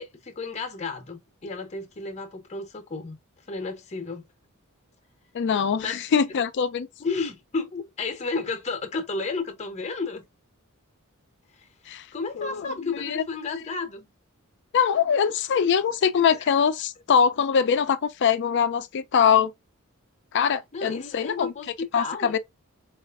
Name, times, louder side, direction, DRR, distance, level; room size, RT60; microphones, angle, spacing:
voice 1, 0.0-3.2 3.5-4.2 5.8-6.2 7.0-10.2 12.1-14.1 16.3-16.5 20.7-22.4, left 4 dB, 30° left, 0.7 m, -32 dB
voice 2, 5.3-6.9 11.9-12.1 12.4-12.7 13.0-13.2 14.7-19.5 20.3-21.5 21.9-22.4, left 7 dB, 55° left, 0.4 m, -23 dB
4.1 x 2.4 x 2.3 m
head